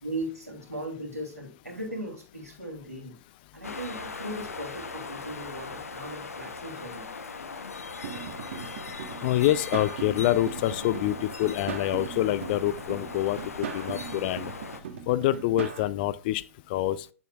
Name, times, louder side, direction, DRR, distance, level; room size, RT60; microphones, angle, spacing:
voice 1, 0.0-3.2 3.5-7.1, right 1 dB, 85° right, 2.8 m, -38 dB
sound 1, 3.6-14.8, left 4 dB, 75° left, 0.8 m, -39 dB
sound 2, 8.0-15.8, right 7 dB, 55° right, 1.1 m, -39 dB
voice 2, 9.2-14.5 15.1-16.4 16.7-17.1, left 14 dB, 40° left, 0.4 m, -26 dB
8.4 x 7.2 x 2.3 m
figure-of-eight pair, 105°, 8 cm